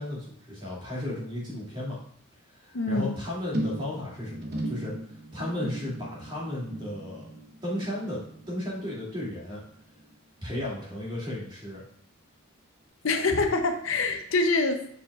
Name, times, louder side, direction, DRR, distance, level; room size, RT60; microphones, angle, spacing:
voice 1, 0.0-2.0 2.5-7.3 7.6-9.6 10.4-11.8, left 1 dB, 25° right, -6 dB, 2.4 m, -34 dB
voice 2, 2.7-3.1 13.0-15.0, left 3 dB, 65° left, 5 dB, 0.6 m, -25 dB
sound 1, 3.5-10.1 10.4-10.8 11.1-11.2, right 1 dB, 50° right, 0.9 m, -37 dB
7.0 x 5.6 x 2.4 m, 0.66 s
head